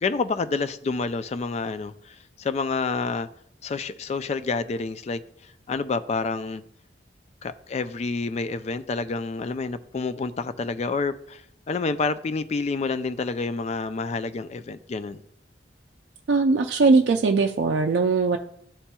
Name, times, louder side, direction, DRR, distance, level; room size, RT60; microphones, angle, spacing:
voice 1, 0.0-3.3 3.6-5.2 5.7-6.6 7.4-11.4 11.7-15.2, left 4 dB, 40° left, 0.3 m, -28 dB
voice 2, 16.3-18.4, right 4 dB, 70° right, 0.4 m, -20 dB
11.5 x 4.3 x 2.3 m
head